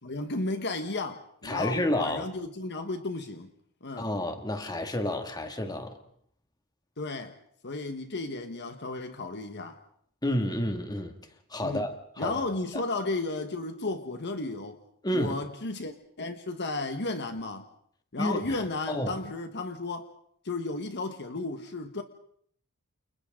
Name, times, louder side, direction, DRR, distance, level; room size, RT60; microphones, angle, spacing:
voice 1, 0.0-3.5 3.8-4.1 7.0-7.4 7.6-9.8 11.6-11.9 12.2-14.8 15.1-17.7 18.1-20.1 20.4-22.0, left 2 dB, 50° left, 7 dB, 1.4 m, -33 dB
voice 2, 1.4-2.3 4.0-6.0 10.2-11.2 11.5-12.4 15.0-15.4 18.2-18.6 18.9-19.2, left 1 dB, 20° left, 6 dB, 2.3 m, -30 dB
29.5 x 29.0 x 3.8 m, 0.63 s
head